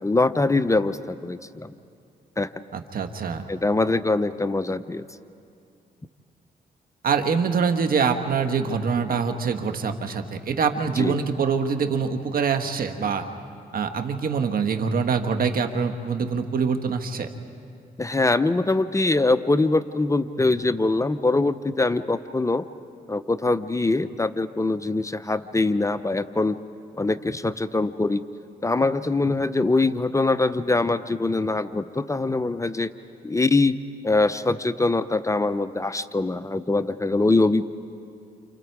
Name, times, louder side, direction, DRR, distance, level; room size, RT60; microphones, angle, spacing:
voice 1, 0.0-1.7 2.4-2.5 3.5-5.0 11.0-11.2 18.0-22.6 23.1-26.6 27.0-28.2 28.6-32.9 33.2-33.8 34.0-37.6, left 2 dB, 20° left, 12 dB, 0.7 m, -23 dB
voice 2, 2.7-3.5 7.0-13.2 13.7-17.3, right 5 dB, 60° right, 6 dB, 1.5 m, -24 dB
29.0 x 28.5 x 4.7 m, 2.5 s
cardioid pair, 70°, 17 cm